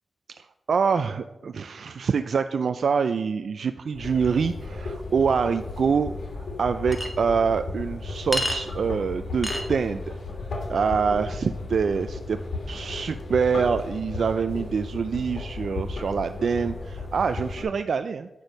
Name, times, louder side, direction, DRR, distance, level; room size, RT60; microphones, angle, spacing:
voice 1, 0.4-6.2 6.6-10.0 10.7-12.4 12.7-18.3, right 5 dB, 75° right, 9 dB, 0.4 m, -25 dB
sound 1, 3.9-17.6, left 3 dB, 75° left, 2.7 m, -35 dB
Chink clink, 6.9-7.1 8.3-8.6 9.4-9.6, equal, 5° left, 1.7 m, -27 dB
9.7 x 6.3 x 5.2 m, 1.0 s
cardioid pair, 65°, 0 cm